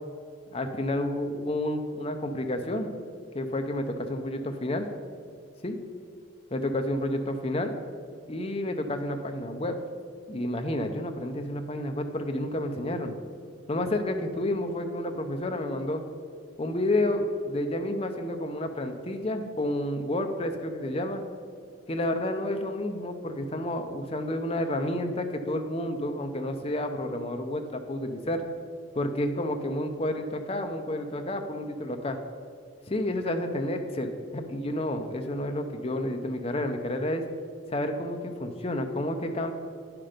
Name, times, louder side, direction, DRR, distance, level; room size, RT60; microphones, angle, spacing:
voice 1, 0.5-2.9 3.3-4.9 5.6-5.8 6.5-7.8 8.3-9.8 10.3-13.2 13.7-16.0 16.6-21.2 21.9-28.4 28.9-32.2 32.9-37.3 37.7-39.5, left 1 dB, 30° left, 5 dB, 0.7 m, -30 dB
9.9 x 6.0 x 5.1 m, 2.3 s
head